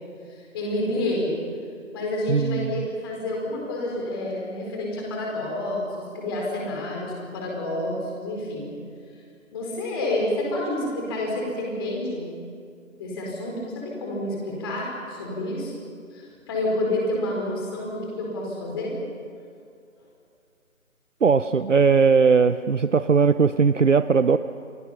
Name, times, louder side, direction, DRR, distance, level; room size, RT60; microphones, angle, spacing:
voice 1, 0.3-1.3 1.9-8.7 9.5-12.2 13.0-15.7 16.1-19.0, left 1 dB, 15° left, -1 dB, 4.4 m, -29 dB
voice 2, 2.3-2.8 21.2-24.4, right 5 dB, 60° right, 13 dB, 0.8 m, -19 dB
29.0 x 23.5 x 5.8 m, 2.3 s
figure-of-eight pair, 155°, 42 cm